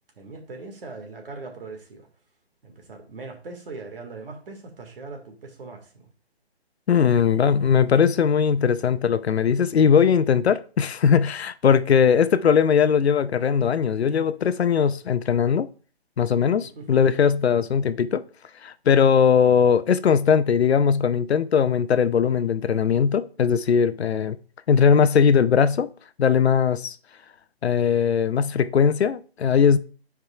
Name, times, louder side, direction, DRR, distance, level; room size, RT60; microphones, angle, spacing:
voice 1, 0.2-2.1 2.6-6.1 14.2-14.3 16.8-17.0, right 3 dB, 60° right, 1.9 m, -40 dB
voice 2, 6.9-15.7 16.2-18.2 18.6-24.4 24.7-25.9 26.2-27.0 27.6-29.8, left 7 dB, 80° left, 0.6 m, -19 dB
10.5 x 4.7 x 2.4 m
hypercardioid pair, 160°, 32 cm